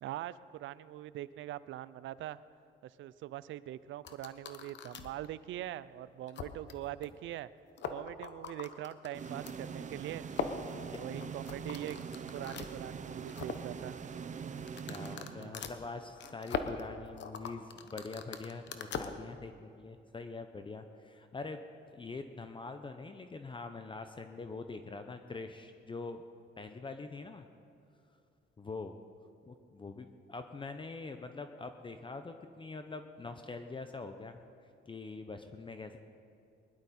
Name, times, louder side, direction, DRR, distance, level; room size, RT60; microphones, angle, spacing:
voice 1, 0.0-2.4 2.8-7.5 7.9-10.3 10.9-12.0 12.3-14.0 15.3-15.5, right 13 dB, 75° right, 17 dB, 0.5 m, -42 dB
sound 1, 4.0-5.3 5.7-5.8 6.3-6.7 7.0-7.1 7.3-7.4 7.7-9.6 10.3-12.7 13.1-13.7 14.6-19.1, left 6 dB, 65° left, 1.0 m, -41 dB
sound 2, 9.1-15.9, right 6 dB, 40° right, 0.7 m, -43 dB
voice 2, 10.9-11.4 14.8-21.6 21.9-26.2 26.6-27.5 28.6-29.0 29.5-34.4 34.9-36.0, left 3 dB, 25° left, 7 dB, 0.7 m, -44 dB
20.5 x 11.5 x 4.3 m, 2.6 s
cardioid pair, 90°, 20 cm